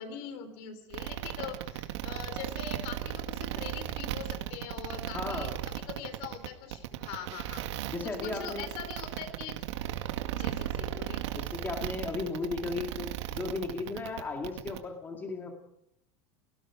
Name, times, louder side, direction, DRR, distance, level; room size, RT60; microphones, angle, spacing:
voice 1, 0.0-7.6 8.2-9.6 10.3-11.2, left 8 dB, 55° left, 11 dB, 3.4 m, -42 dB
sound 1, 0.9-14.8, right 13 dB, 80° right, 2.2 m, -36 dB
voice 2, 5.1-5.5 7.9-8.7 11.3-15.5, left 3 dB, 15° left, 3 dB, 2.3 m, -35 dB
29.5 x 18.5 x 5.0 m, 0.74 s
supercardioid pair, 165°, 15 cm